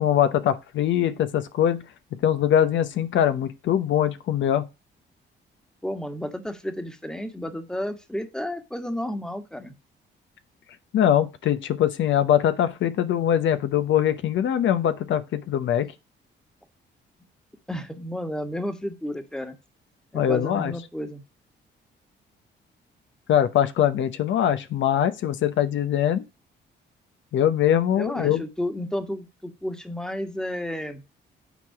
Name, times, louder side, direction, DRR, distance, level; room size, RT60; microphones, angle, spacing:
voice 1, 0.0-1.8 2.2-4.6 10.9-15.9 20.1-20.7 23.3-26.2 27.3-28.4, left 10 dB, 75° left, 0.8 m, -22 dB
voice 2, 5.8-9.7 17.7-19.6 20.1-21.2 27.9-31.0, left 1 dB, 5° left, 1.4 m, -32 dB
9.3 x 3.9 x 5.8 m
cardioid pair, 105°, 20 cm